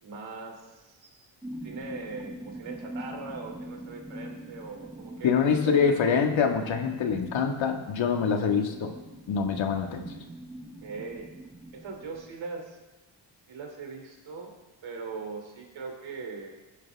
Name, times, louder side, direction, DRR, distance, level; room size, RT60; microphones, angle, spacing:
voice 1, 0.0-1.3 1.6-5.3 5.6-6.0 10.8-11.3 11.7-12.8 13.5-14.5 14.8-16.6, right 4 dB, 80° right, 2 dB, 3.0 m, -40 dB
sound 1, 1.4-12.4, right 1 dB, 10° right, 0.9 m, -43 dB
voice 2, 5.2-8.9 9.3-10.1, left 6 dB, 80° left, 4 dB, 1.8 m, -25 dB
20.5 x 10.5 x 3.5 m, 1.1 s
cardioid pair, 105°, 46 cm